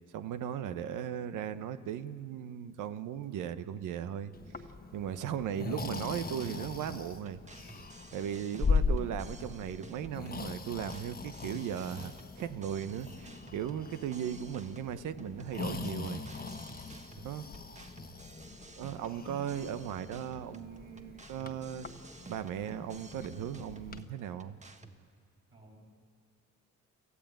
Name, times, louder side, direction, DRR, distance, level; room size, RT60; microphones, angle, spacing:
voice 1, 0.1-4.3 4.9-7.4 7.7-16.2 17.2-17.4 18.8-21.9 22.3-24.6, right 9 dB, 85° right, 12 dB, 0.9 m, -37 dB
Breathing, 4.3-24.0, left 4 dB, 30° left, 1.3 m, -39 dB
sound 1, 5.9-25.0, right 3 dB, 25° right, 1.5 m, -52 dB
voice 2, 8.5-8.9 17.1-17.5 25.5-26.0, right 1 dB, 45° right, -3 dB, 5.7 m, -57 dB
28.0 x 14.0 x 9.2 m, 2.2 s
cardioid pair, 90°, 30 cm